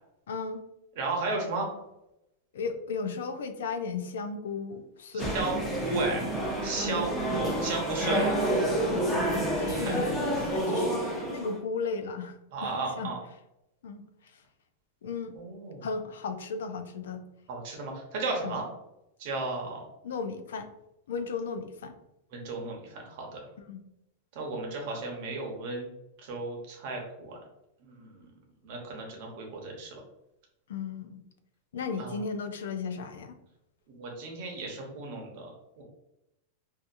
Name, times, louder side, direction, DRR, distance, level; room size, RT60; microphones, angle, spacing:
voice 1, 0.3-0.6 2.5-5.4 6.8-7.1 8.8-9.2 9.6-12.4 12.6-13.1 13.8-14.4 15.0-15.3 15.8-17.2 18.4-18.6 20.0-20.7 21.1-22.0 23.6-23.8 30.7-31.2 31.7-33.4, left 5 dB, 85° left, 7 dB, 0.3 m, -35 dB
voice 2, 1.0-1.7 5.3-6.3 6.6-8.3 9.8-9.9 12.5-13.2 15.3-15.9 17.5-18.6 19.2-19.8 22.3-23.4 24.3-25.9 26.2-27.4 27.8-28.2 28.6-30.0 32.0-32.2 33.9-35.5 35.8-35.9, right 3 dB, 55° right, 0 dB, 0.9 m, -34 dB
sound 1, 5.2-11.6, right 1 dB, 15° left, 0.6 m, -29 dB
2.7 x 2.4 x 2.5 m, 0.87 s
supercardioid pair, 145°, 0 cm